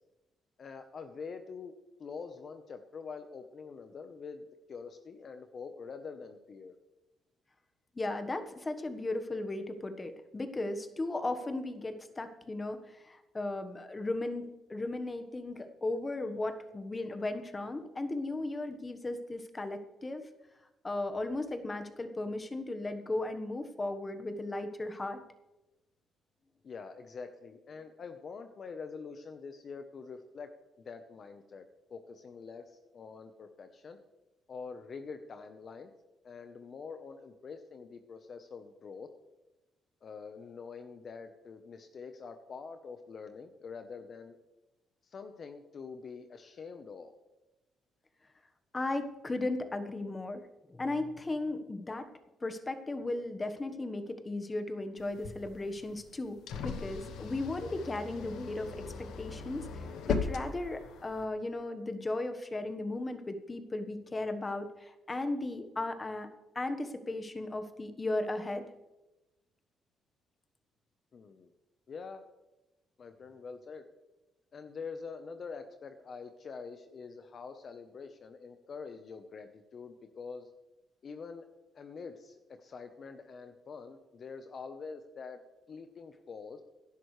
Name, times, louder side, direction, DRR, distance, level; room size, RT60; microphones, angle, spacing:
voice 1, 0.6-1.7 2.0-6.7 26.6-30.5 30.8-34.0 34.5-35.9 36.2-39.1 40.0-44.4 45.0-47.1 71.1-71.5 71.9-72.2 73.0-73.8 74.5-80.5 81.0-81.5 81.7-85.4 85.7-86.6, left 5 dB, 50° left, 8 dB, 0.9 m, -45 dB
voice 2, 7.9-20.3 20.8-25.2 48.7-50.4 50.7-52.1 52.4-58.7 59.0-66.3 66.5-68.7, left 2 dB, 25° left, 7 dB, 1.3 m, -36 dB
sound 1, 55.0-61.2, left 5 dB, 85° left, 1.2 m, -39 dB
17.0 x 11.0 x 3.3 m, 1.0 s
cardioid pair, 90°, 0 cm